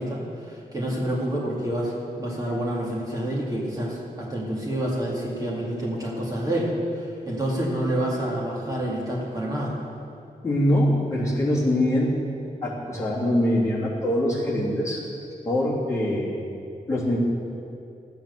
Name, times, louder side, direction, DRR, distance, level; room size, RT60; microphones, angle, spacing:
voice 1, 0.0-6.7 7.0-9.8, right 1 dB, 25° right, -5 dB, 2.3 m, -28 dB
voice 2, 10.4-12.2 12.6-15.0 15.4-16.3 16.9-17.2, left 1 dB, 20° left, -7 dB, 2.9 m, -23 dB
13.0 x 9.1 x 6.7 m, 2.6 s
wide cardioid pair, 175°, 15 cm